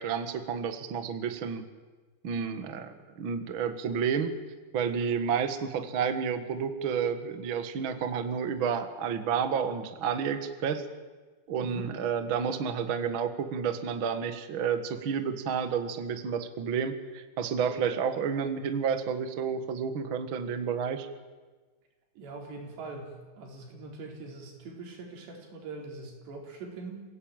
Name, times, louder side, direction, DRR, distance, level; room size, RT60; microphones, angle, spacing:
voice 1, 0.0-1.6 2.2-4.3 4.7-10.8 11.5-21.1, right 7 dB, 90° right, 9 dB, 1.1 m, -30 dB
voice 2, 22.2-27.0, right 3 dB, 70° right, 1 dB, 6.1 m, -42 dB
28.0 x 17.0 x 9.1 m, 1.3 s
omnidirectional pair, 5.2 m